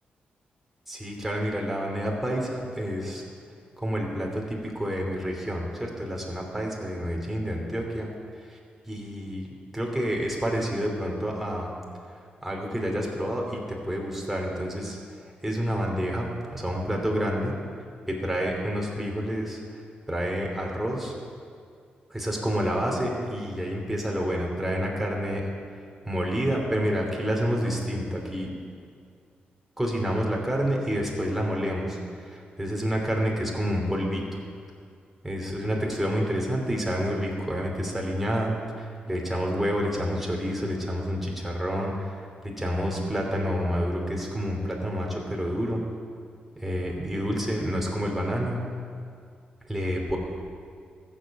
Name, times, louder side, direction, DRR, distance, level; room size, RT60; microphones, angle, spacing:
voice 1, 0.9-3.2 3.8-8.1 8.9-9.5 9.7-11.8 12.4-15.0 15.4-17.5 18.1-19.6 20.1-21.1 22.1-25.4 26.1-28.5 29.8-32.0 32.3-34.4 35.2-38.5 38.8-42.1 42.4-45.8 46.6-48.6 49.7-50.2, equal, 5° right, -1 dB, 3.0 m, -28 dB
14.5 x 7.9 x 7.3 m, 2.2 s
cardioid pair, 85°, 3 cm